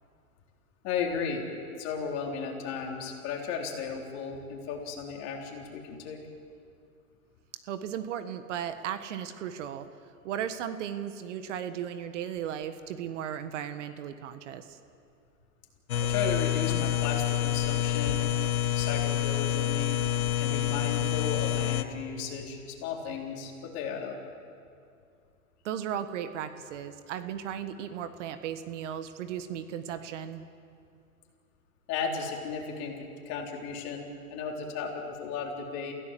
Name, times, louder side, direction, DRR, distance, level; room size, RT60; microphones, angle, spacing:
voice 1, 0.8-1.4 1.8-6.2 16.0-18.3 18.7-20.0 20.4-24.2 31.9-35.9, left 6 dB, 35° left, 0 dB, 3.9 m, -35 dB
voice 2, 7.7-9.9 10.2-14.8 25.6-30.5, right 9 dB, 55° right, 10 dB, 1.5 m, -36 dB
sound 1, 15.9-21.8, left 12 dB, 75° left, 1.4 m, -28 dB
28.5 x 16.5 x 7.6 m, 2.4 s
hypercardioid pair, 135°, 43 cm